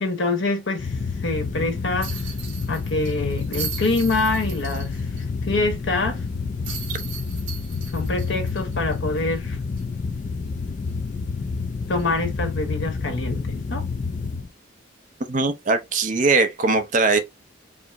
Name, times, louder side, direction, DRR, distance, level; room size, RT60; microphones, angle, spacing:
voice 1, 0.0-2.2 2.7-5.1 5.4-6.2 7.9-9.6 11.9-13.9, left 2 dB, 65° left, 1.1 m, -25 dB
sound 1, 0.8-14.5, left 4 dB, 40° left, 0.3 m, -29 dB
sound 2, 2.0-5.2 5.6-5.7 6.6-9.3 9.8-9.9 12.0-12.2, right 7 dB, 65° right, 1.3 m, -37 dB
voice 2, 15.3-17.2, right 3 dB, 40° right, 0.6 m, -20 dB
4.8 x 2.0 x 3.5 m
head